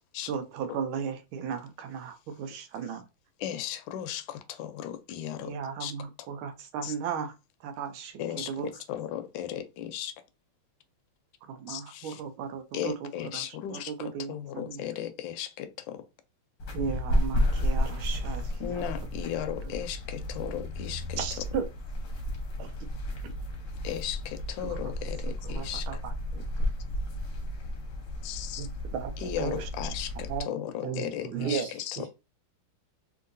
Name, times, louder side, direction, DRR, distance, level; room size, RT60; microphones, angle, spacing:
voice 1, 0.3-3.0 5.4-7.3 7.6-8.2 8.5-8.7 11.5-12.9 13.3-13.4 13.7-14.8 16.7-18.8 21.2-21.6 22.6-22.7 23.2-23.3 24.6-24.8 25.5-26.4 28.6-29.6 30.3-30.5 31.3-31.7, right 7 dB, 90° right, 1.4 m, -35 dB
voice 2, 3.4-5.5 5.8-6.3 6.8-6.9 8.2-10.1 11.7-12.2 12.7-16.1 18.6-21.2 23.8-26.0 28.2-28.7 29.2-32.1, left 10 dB, 75° left, 1.2 m, -36 dB
sound 1, 16.6-30.4, equal, 55° left, 0.9 m, -32 dB
voice 3, 30.8-32.1, right 7 dB, 60° right, 1.5 m, -38 dB
3.7 x 2.7 x 2.5 m
omnidirectional pair, 2.2 m